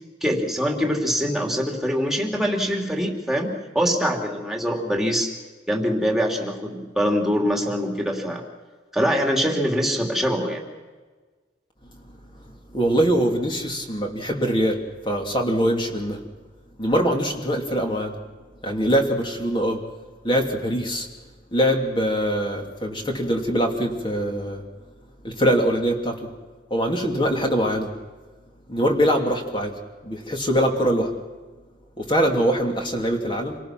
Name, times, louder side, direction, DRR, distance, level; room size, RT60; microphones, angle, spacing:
voice 1, 0.2-5.3 5.7-8.4 8.9-10.6, equal, ahead, 1 dB, 2.9 m, -23 dB
voice 2, 12.7-16.2 16.8-18.2 18.6-19.8 20.2-21.1 21.5-24.6 25.2-26.3 26.7-27.9 28.7-29.8 30.0-31.1 32.0-33.6, equal, 25° left, 2 dB, 2.8 m, -23 dB
27.0 x 18.5 x 6.0 m, 1.4 s
head